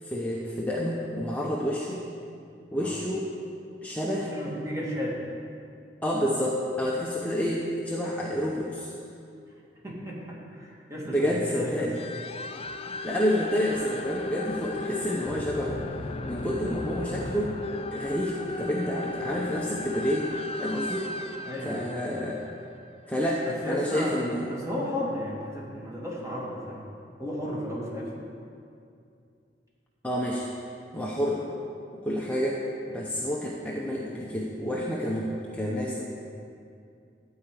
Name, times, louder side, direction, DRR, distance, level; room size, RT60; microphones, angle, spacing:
voice 1, 0.0-2.0 2.7-3.3 3.8-4.3 6.0-8.9 11.1-11.9 12.9-15.8 16.2-17.6 17.9-20.3 20.6-21.1 21.6-22.4 23.1-24.5 30.0-30.5 30.9-31.4 31.9-36.1, equal, 10° left, -4 dB, 0.8 m, -29 dB
voice 2, 4.1-5.2 9.8-11.9 21.4-21.9 23.4-26.9 27.2-28.1, left 1 dB, 20° right, -5 dB, 2.3 m, -34 dB
sound 1, 11.9-23.2, left 3 dB, 35° left, 0.4 m, -36 dB
12.5 x 4.9 x 8.4 m, 2.5 s
head